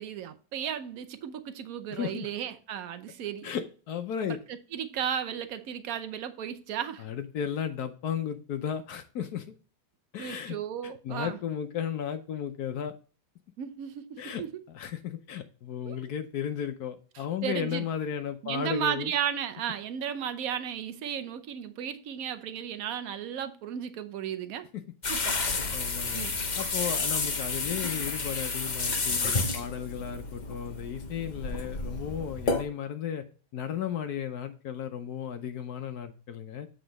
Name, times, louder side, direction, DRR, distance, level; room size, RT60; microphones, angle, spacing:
voice 1, 0.0-3.5 4.7-7.0 10.2-11.4 13.6-14.5 15.9-16.0 17.4-17.8 18.4-24.7 25.1-25.4 26.1-26.3, right 9 dB, 60° right, 1.1 m, -34 dB
voice 2, 1.9-2.3 3.4-4.4 7.0-9.5 10.1-10.6 10.8-12.9 14.2-14.4 14.7-19.1 24.7-24.8 25.2-25.3 25.7-26.3 26.5-33.2 33.5-36.7, left 8 dB, 70° left, 1.1 m, -34 dB
sound 1, 25.0-32.6, left 3 dB, 40° left, 0.6 m, -31 dB
8.1 x 3.9 x 5.3 m
omnidirectional pair, 1.9 m